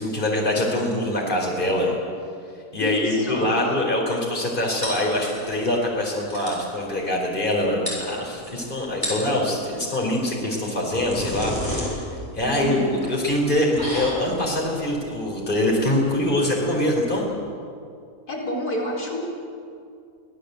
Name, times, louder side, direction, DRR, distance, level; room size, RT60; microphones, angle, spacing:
voice 1, 0.0-1.9 2.7-12.8 13.0-17.2, left 1 dB, 35° left, -1 dB, 4.4 m, -24 dB
voice 2, 2.8-3.8 12.4-13.0 18.3-19.2, equal, 85° left, -2 dB, 4.8 m, -28 dB
sound 1, 4.8-5.7 6.0-6.1 6.3-6.7 7.5-7.6 7.9-8.5 8.9-9.4 10.5-17.2, equal, 15° left, 7.1 m, -33 dB
25.0 x 17.0 x 8.2 m, 2.4 s
omnidirectional pair, 1.6 m